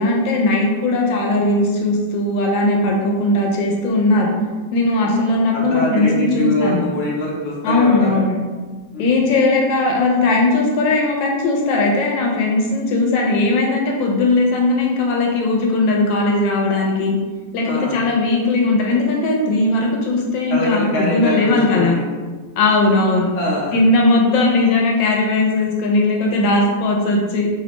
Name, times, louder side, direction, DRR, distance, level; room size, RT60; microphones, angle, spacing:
voice 1, 0.0-4.3 4.7-6.8 7.6-8.4 9.0-17.1 17.5-22.0 22.6-23.3 23.7-27.5, left 2 dB, 80° left, -1 dB, 1.3 m, -18 dB
voice 2, 5.5-8.2 8.9-9.1 17.7-18.0 20.5-22.0 23.3-23.8, left 1 dB, 65° left, -4 dB, 0.6 m, -23 dB
3.3 x 2.1 x 2.9 m, 1.4 s
omnidirectional pair, 2.0 m